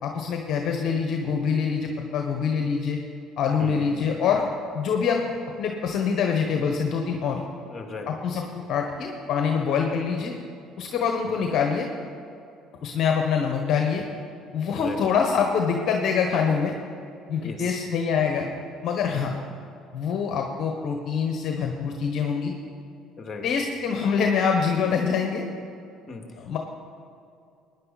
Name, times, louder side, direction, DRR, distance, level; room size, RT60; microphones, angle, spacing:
voice 1, 0.0-3.0 3.4-4.4 4.7-7.4 8.1-10.3 10.8-11.9 12.8-14.0 14.5-16.8 17.3-18.5 18.8-19.3 19.9-22.5 23.4-25.5 26.4-26.6, left 6 dB, 60° left, 2 dB, 1.3 m, -25 dB
voice 2, 3.6-3.9 7.6-8.2 11.3-11.4 14.7-15.0 17.4-17.8 19.1-19.3 23.2-23.5 26.1-26.6, left 3 dB, 35° left, 3 dB, 2.2 m, -38 dB
18.5 x 10.0 x 4.2 m, 2.5 s
supercardioid pair, 70°, 0 cm